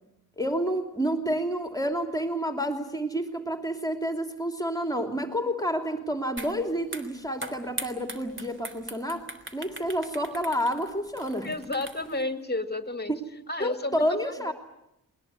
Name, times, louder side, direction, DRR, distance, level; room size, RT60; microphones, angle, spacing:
voice 1, 0.4-9.3 9.5-11.5 13.1-13.2 13.6-14.5, equal, 10° left, 5 dB, 3.0 m, -29 dB
sound 1, 6.4-6.5 6.8-12.2, right 2 dB, 30° right, 3.6 m, -40 dB
voice 2, 11.4-13.1 13.5-14.5, left 2 dB, 25° left, 9 dB, 2.2 m, -31 dB
21.0 x 21.0 x 9.7 m, 0.84 s
cardioid pair, 75°, 37 cm